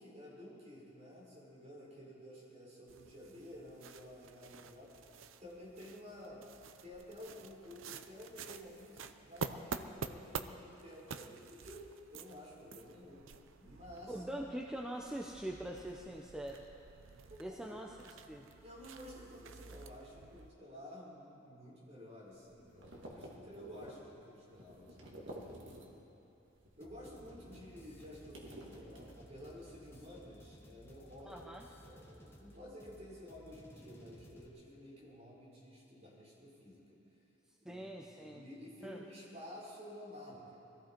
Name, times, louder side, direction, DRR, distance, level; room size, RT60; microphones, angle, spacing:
voice 1, 0.0-5.0 5.4-6.5 6.8-13.3 13.6-14.2 17.3-17.7 18.6-26.0 26.8-37.0 37.6-40.7, left 1 dB, 35° right, -5 dB, 4.7 m, -52 dB
sound 1, 2.9-20.5, right 5 dB, 85° right, 0.6 m, -49 dB
voice 2, 14.1-16.6 17.4-17.9 18.3-18.5 31.2-31.6 37.6-38.4 38.8-39.0, right 1 dB, 5° right, -1 dB, 0.6 m, -43 dB
sound 2, 22.3-26.2 26.5-29.6, equal, 70° right, 1.9 m, -52 dB
sound 3, 26.8-34.5, equal, 10° left, 1.2 m, -58 dB
21.5 x 14.5 x 4.5 m, 3.0 s
head